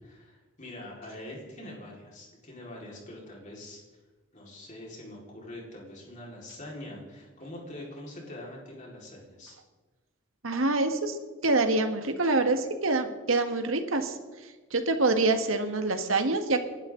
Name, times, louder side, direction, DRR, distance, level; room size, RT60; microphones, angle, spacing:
voice 1, 0.0-3.8 4.3-9.6, left 1 dB, 35° left, -3 dB, 4.7 m, -44 dB
voice 2, 10.4-11.2 11.4-14.2 14.7-16.6, right 2 dB, 80° right, 6 dB, 1.7 m, -26 dB
29.0 x 11.5 x 3.9 m, 1.3 s
head